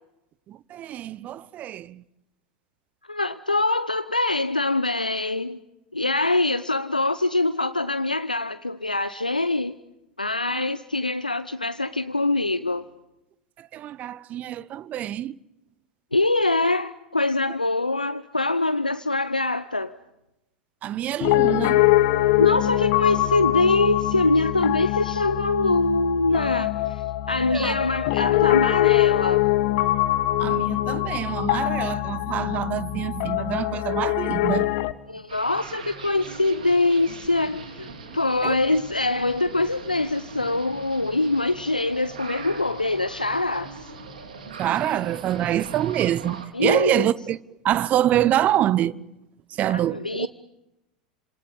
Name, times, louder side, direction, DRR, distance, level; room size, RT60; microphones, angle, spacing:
voice 1, 0.5-2.0 10.5-10.6 13.7-15.3 20.8-21.9 27.5-27.7 30.4-34.7 38.4-38.6 44.6-47.4 47.6-48.9 49.6-50.3, right 12 dB, 35° right, 1.1 m, -25 dB
voice 2, 3.1-5.6 5.9-9.8 10.2-12.8 16.1-20.0 22.4-29.5 35.1-43.9 46.5-47.1 49.7-50.3, left 2 dB, 90° left, 1.0 m, -24 dB
Piano, 21.2-34.9, left 16 dB, 50° left, 1.7 m, -23 dB
sound 1, 35.3-46.5, right 4 dB, 70° right, 4.9 m, -40 dB
30.0 x 27.0 x 7.2 m
figure-of-eight pair, 85°, 4 cm